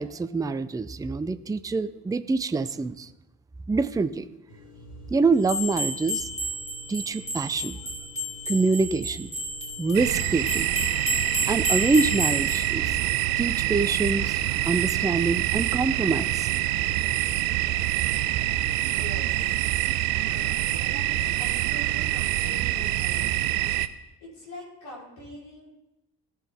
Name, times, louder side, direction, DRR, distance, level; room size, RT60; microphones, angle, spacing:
voice 1, 0.0-3.1 3.7-4.4 5.1-6.3 6.9-7.8 8.5-9.3 9.8-10.7 11.5-13.0 13.4-16.5, right 4 dB, 10° right, 12 dB, 0.5 m, -25 dB
sound 1, 4.5-19.7, right 1 dB, 55° left, 2.0 m, -48 dB
sound 2, 5.4-12.7, right 1 dB, 15° left, 3.2 m, -31 dB
sound 3, 9.9-23.9, right 15 dB, 75° right, 0.6 m, -26 dB
voice 2, 18.8-23.6 23.9-25.7, left 1 dB, 70° left, -5 dB, 4.1 m, -44 dB
17.5 x 6.0 x 3.5 m, 0.91 s
figure-of-eight pair, 40°, 48 cm